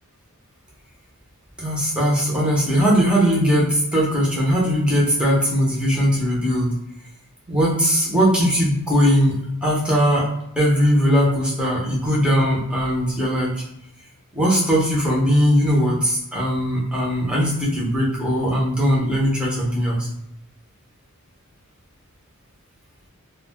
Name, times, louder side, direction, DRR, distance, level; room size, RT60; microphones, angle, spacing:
voice 1, 1.6-6.7 7.5-10.3 10.6-13.5 14.3-20.1, equal, 5° right, -5 dB, 0.7 m, -19 dB
2.3 x 2.2 x 3.4 m, 0.80 s
head